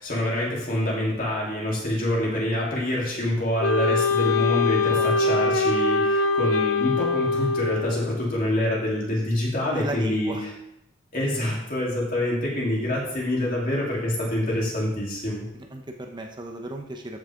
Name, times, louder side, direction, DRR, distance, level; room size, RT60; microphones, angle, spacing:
voice 1, 0.0-10.3 11.1-15.4, left 1 dB, 45° left, -4 dB, 3.4 m, -26 dB
Wind instrument woodwind instrument, 3.6-8.2, left 3 dB, 85° left, 0.8 m, -23 dB
voice 2, 4.7-5.3 9.6-10.4 15.5-17.2, right 1 dB, 25° right, 2 dB, 0.8 m, -36 dB
14.0 x 6.3 x 3.7 m, 0.82 s
head